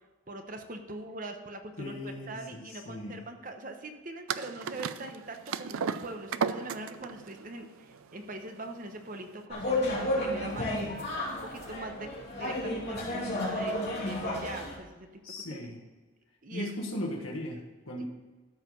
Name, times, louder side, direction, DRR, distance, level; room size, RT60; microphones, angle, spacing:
voice 1, 0.3-10.9 11.3-13.8 14.0-15.2 15.5-15.6 16.4-16.7 17.9-18.0, right 2 dB, 40° right, 5 dB, 0.9 m, -42 dB
voice 2, 1.8-3.3 15.2-15.8 16.5-18.0, left 1 dB, 75° left, -2 dB, 1.4 m, -38 dB
sound 1, 4.3-9.4, right 6 dB, 85° right, 0.5 m, -35 dB
sound 2, 9.5-14.8, left 1 dB, 50° left, 2.9 m, -32 dB
13.0 x 5.0 x 5.5 m, 1.3 s
head